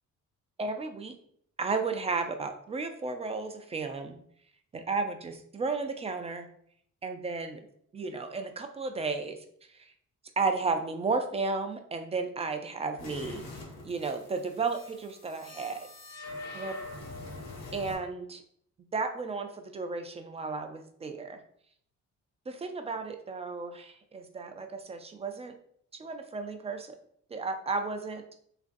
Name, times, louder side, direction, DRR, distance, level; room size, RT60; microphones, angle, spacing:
voice 1, 0.6-1.1 1.6-4.2 4.7-6.5 7.0-7.7 7.9-9.4 9.8-9.9 10.4-13.4 13.8-15.9 16.5-16.7 17.7-18.4 18.9-21.4 22.5-25.5 25.9-27.0 27.3-28.2, right 4 dB, 20° right, 6 dB, 0.3 m, -33 dB
sound 1, 13.0-18.0, left 2 dB, 60° left, 0.9 m, -44 dB
3.0 x 2.5 x 2.5 m, 0.65 s
cardioid pair, 90°, 30 cm